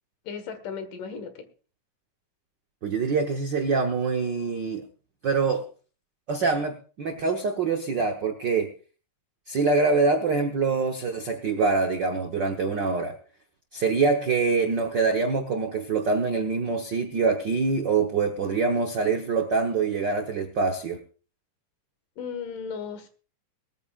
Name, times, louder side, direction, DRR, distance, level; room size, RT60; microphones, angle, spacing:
voice 1, 0.2-1.5 22.2-23.1, left 6 dB, 75° left, 9 dB, 3.1 m, -35 dB
voice 2, 2.8-4.8 5.2-5.6 6.3-8.7 9.5-13.1 13.7-21.0, right 4 dB, 85° right, 4 dB, 0.9 m, -25 dB
20.5 x 14.0 x 2.4 m, 0.36 s
omnidirectional pair, 3.8 m